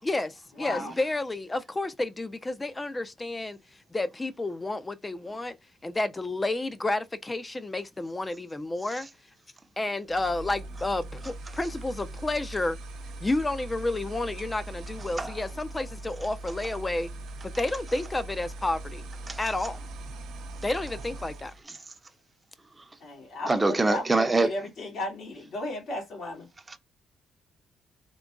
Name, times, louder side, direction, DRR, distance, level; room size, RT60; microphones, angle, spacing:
voice 1, 0.0-3.6 3.9-5.6 5.8-9.1 9.8-12.8 13.2-17.1 17.6-19.0 19.4-19.8 20.6-21.5, left 2 dB, 20° left, 0.6 m, -30 dB
voice 2, 0.6-0.9 23.0-23.6 23.9-26.5, left 1 dB, 70° left, 2.0 m, -35 dB
sound 1, 10.1-21.6, right 2 dB, 80° right, 0.6 m, -41 dB
voice 3, 19.3-19.7 21.6-21.9 22.7-23.0 23.5-24.7 26.7-26.8, right 3 dB, 20° right, 0.7 m, -28 dB
3.8 x 2.8 x 2.4 m
cardioid pair, 90°, 0 cm